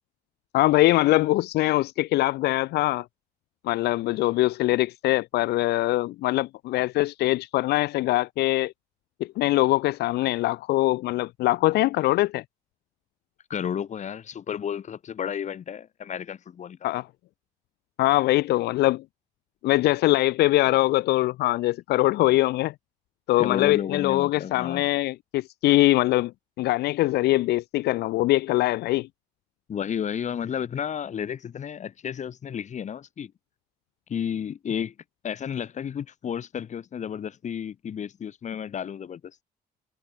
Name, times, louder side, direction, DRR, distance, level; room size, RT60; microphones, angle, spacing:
voice 1, 0.5-3.0 3.6-8.7 9.2-12.4 16.8-17.1 18.0-19.0 19.6-22.7 23.3-26.3 26.6-29.1, left 17 dB, 75° left, 0.8 m, -22 dB
voice 2, 13.5-16.9 23.4-24.9 29.7-33.3 34.1-34.9 35.2-39.4, left 8 dB, 45° left, 3.4 m, -32 dB
cardioid pair, 110°, 17 cm